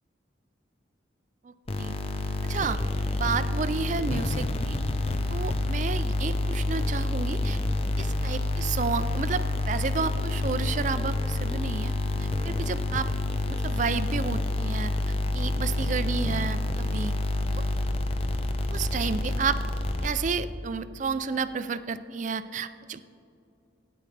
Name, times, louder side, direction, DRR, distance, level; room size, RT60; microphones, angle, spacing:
voice 1, 1.4-1.9 2.4-2.8 3.1-4.8 5.3-7.6 8.0-11.9 12.2-13.1 13.5-17.1 17.5-17.6 18.7-19.6 20.0-23.0, right 5 dB, 40° right, 13 dB, 0.4 m, -31 dB
sound 1, 1.7-20.5, left 2 dB, 30° left, 0.6 m, -28 dB
16.5 x 9.5 x 3.3 m, 2.6 s
head